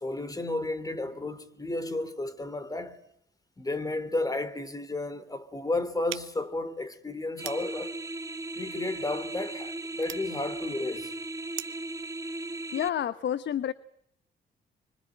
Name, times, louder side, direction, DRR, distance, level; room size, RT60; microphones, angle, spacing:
voice 1, 0.0-3.0 3.6-7.9 8.5-11.1, left 2 dB, 20° left, 3.1 m, -32 dB
sound 1, 6.1-11.9, right 13 dB, 80° right, 1.3 m, -45 dB
sound 2, 7.4-12.9, right 2 dB, 15° right, 1.9 m, -37 dB
voice 2, 12.7-13.7, left 10 dB, 65° left, 1.1 m, -29 dB
25.5 x 25.0 x 9.0 m
cardioid pair, 90°, 20 cm